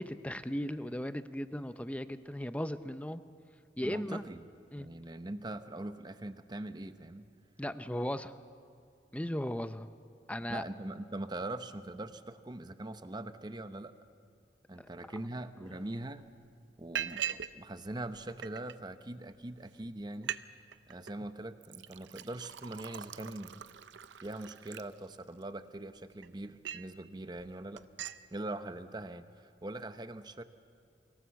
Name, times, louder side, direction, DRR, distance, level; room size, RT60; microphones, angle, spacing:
voice 1, 0.0-3.2 3.8-4.2 4.7-4.9 7.6-8.3 9.1-9.9 10.3-10.6 14.8-14.9 15.7-15.8, equal, 10° left, 11 dB, 0.6 m, -37 dB
voice 2, 3.8-4.4 4.8-7.2 10.5-13.9 14.7-16.2 16.8-20.3 20.9-23.6 24.2-27.8 28.3-30.4, right 1 dB, 25° right, 10 dB, 0.8 m, -42 dB
Liquid, 15.8-15.9 16.2-16.5 17.0-17.5 17.9-18.8 19.4-19.5 19.8-19.9 20.1-20.4 20.7-21.1 21.6-25.4 26.0-27.0 27.4-27.5 27.8-28.2, right 9 dB, 90° right, 0.6 m, -41 dB
25.0 x 17.5 x 7.1 m, 2.5 s
head